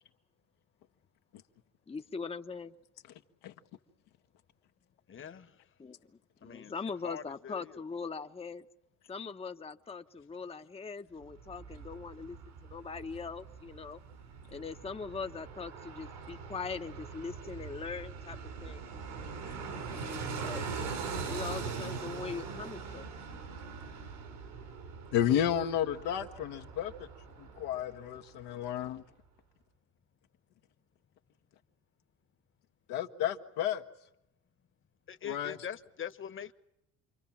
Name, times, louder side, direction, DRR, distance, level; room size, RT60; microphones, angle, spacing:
voice 1, 1.9-2.7 5.8-6.0 6.4-8.7 9.1-12.4 12.6-14.0 14.5-18.8 19.9-20.1 20.4-20.7 21.2-23.1, left 5 dB, 20° left, 0.9 m, -41 dB
voice 2, 5.1-5.5 6.4-6.7 7.0-7.8 35.1-36.5, left 8 dB, 40° left, 1.4 m, -43 dB
Fixed-wing aircraft airplane, 11.2-28.2 28.5-28.6, right 5 dB, 90° right, 5.1 m, -42 dB
voice 3, 25.1-27.1 27.4-29.0 32.9-33.8 35.2-35.6, left 10 dB, 85° left, 1.6 m, -32 dB
28.5 x 23.5 x 7.3 m
supercardioid pair, 80°, 32 cm